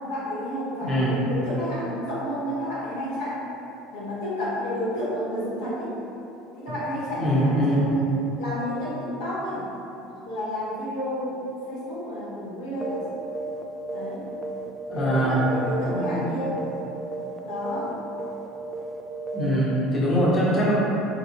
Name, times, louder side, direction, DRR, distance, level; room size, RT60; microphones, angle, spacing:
voice 1, 0.0-3.4 3.9-5.9 6.6-9.7 10.2-11.4 11.6-13.2 13.9-14.2 14.9-16.7 17.4-17.9, equal, 85° left, -11 dB, 1.4 m, -30 dB
voice 2, 0.8-1.2 7.2-7.8 14.9-15.4 15.9-16.3 19.3-20.7, equal, 35° left, -8 dB, 1.2 m, -22 dB
sound 1, 12.8-13.1 13.3-13.6 13.9-15.3 15.5-15.8 16.0-16.3 16.6-16.9 17.1-17.4 17.7-17.9 18.2-18.5 18.7-19.0 19.3-19.5, right 2 dB, 20° right, 0.4 m, -33 dB
3.9 x 3.0 x 2.7 m, 2.9 s
hypercardioid pair, 80°, 0 cm